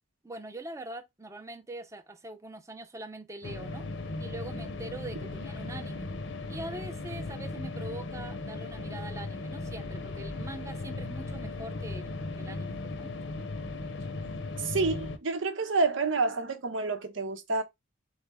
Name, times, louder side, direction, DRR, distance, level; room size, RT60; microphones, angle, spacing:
voice 1, 0.2-3.8 4.2-6.1 6.5-13.1, right 2 dB, 15° right, 0.6 m, -43 dB
sound 1, 3.4-15.2, left 2 dB, 70° left, 0.7 m, -37 dB
voice 2, 14.6-17.6, right 3 dB, 80° right, 0.8 m, -28 dB
4.2 x 3.2 x 3.5 m
head